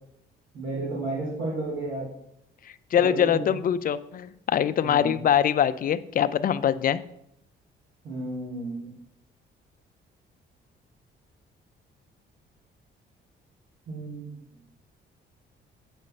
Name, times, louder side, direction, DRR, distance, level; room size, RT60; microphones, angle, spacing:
voice 1, 0.5-2.1 3.0-3.4 4.8-5.2 8.0-8.9 13.9-14.3, right 2 dB, 75° right, -7 dB, 2.8 m, -32 dB
voice 2, 2.9-7.0, left 9 dB, 45° left, 14 dB, 0.4 m, -23 dB
8.4 x 5.4 x 3.2 m, 0.76 s
cardioid pair, 90°, 20 cm